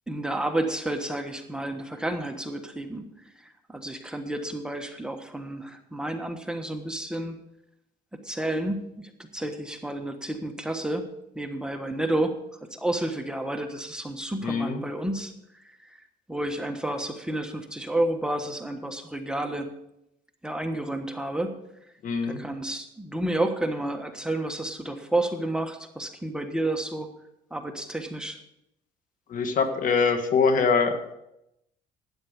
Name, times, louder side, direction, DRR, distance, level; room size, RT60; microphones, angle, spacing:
voice 1, 0.1-3.1 3.4-7.4 8.2-11.1 11.3-12.3 12.7-16.0 16.3-19.7 20.4-21.6 22.2-27.1 27.5-28.4, right 1 dB, 5° right, 5 dB, 1.3 m, -30 dB
voice 2, 14.4-14.8 22.0-22.4 29.3-31.1, left 5 dB, 50° left, 7 dB, 1.6 m, -23 dB
12.5 x 9.6 x 5.1 m, 0.82 s
cardioid pair, 110°, 17 cm